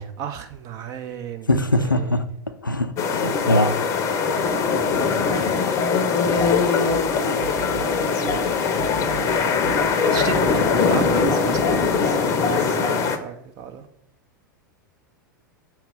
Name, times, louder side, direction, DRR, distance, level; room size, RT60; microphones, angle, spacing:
voice 1, 0.0-1.5 1.8-2.2 5.3-5.7 6.3-6.8 10.0-13.9, right 8 dB, 35° right, 8 dB, 0.5 m, -35 dB
voice 2, 1.5-2.2 2.6-3.7, left 1 dB, 90° left, 9 dB, 0.4 m, -21 dB
sound 1, 3.0-13.2, left 5 dB, 30° left, 0.6 m, -21 dB
Drum kit, 6.4-12.0, right 5 dB, 75° right, 2.0 m, -38 dB
7.2 x 2.9 x 5.2 m, 0.80 s
figure-of-eight pair, 90°, 11 cm